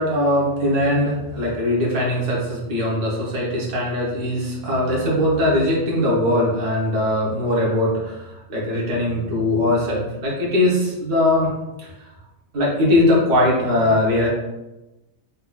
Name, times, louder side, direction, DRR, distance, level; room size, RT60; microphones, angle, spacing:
voice 1, 0.0-11.5 12.0-12.1 12.5-14.3, left 1 dB, 65° right, -5 dB, 1.3 m, -20 dB
5.3 x 2.2 x 2.2 m, 1.0 s
omnidirectional pair, 1.4 m